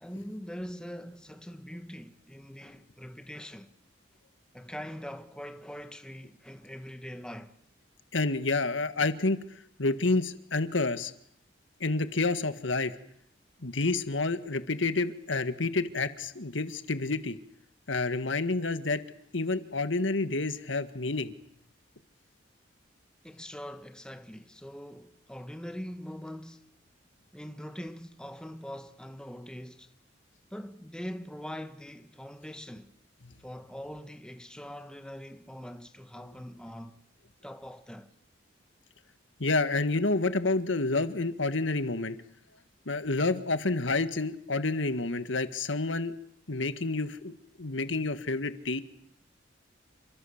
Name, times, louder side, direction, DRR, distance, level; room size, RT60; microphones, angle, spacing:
voice 1, 0.0-3.7 4.5-7.6 23.2-26.7 27.3-29.9 30.5-32.9 33.4-37.0 37.4-38.1, equal, 5° left, 1.3 m, -42 dB
voice 2, 8.1-9.4 9.8-11.1 11.8-12.9 13.6-17.4 17.9-19.0 19.3-21.3 39.4-42.2 42.9-46.1 46.5-47.3 47.6-48.8, left 3 dB, 80° left, 1.8 m, -29 dB
28.5 x 26.5 x 7.3 m
head